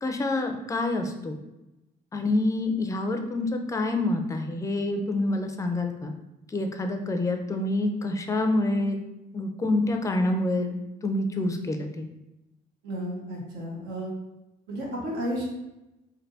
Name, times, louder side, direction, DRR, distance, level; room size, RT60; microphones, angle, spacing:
voice 1, 0.0-1.4 2.1-6.1 6.5-9.0 9.3-10.7 11.0-12.1, left 2 dB, 20° left, 5 dB, 0.4 m, -27 dB
voice 2, 12.8-14.1 14.7-15.4, equal, 80° right, -3 dB, 1.2 m, -32 dB
3.3 x 2.6 x 2.6 m, 0.95 s
cardioid pair, 110°, 17 cm